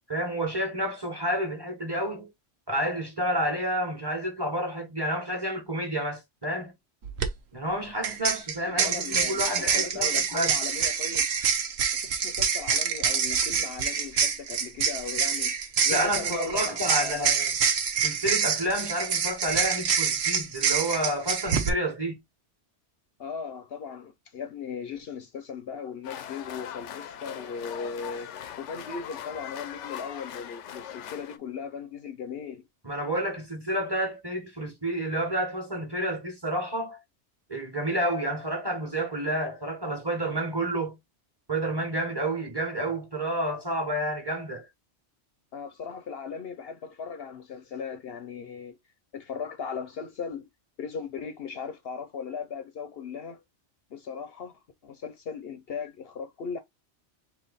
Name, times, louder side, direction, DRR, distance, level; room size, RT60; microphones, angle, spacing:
voice 1, 0.1-2.3 2.7-6.7 7.5-10.6 15.9-17.5 18.0-22.2 32.8-37.0 37.5-41.0 41.5-44.7, right 1 dB, 20° right, 1.2 m, -30 dB
sound 1, 7.0-7.3 8.0-21.7, right 6 dB, 65° right, 1.0 m, -26 dB
voice 2, 8.7-11.3 11.9-15.5 15.8-17.4 23.2-28.3 28.6-32.7 45.5-48.8 49.1-50.5 50.8-53.4 53.9-56.6, left 6 dB, 60° left, 0.8 m, -38 dB
sound 2, 26.0-31.4, left 9 dB, 85° left, 1.0 m, -40 dB
3.5 x 2.9 x 4.0 m
omnidirectional pair, 1.2 m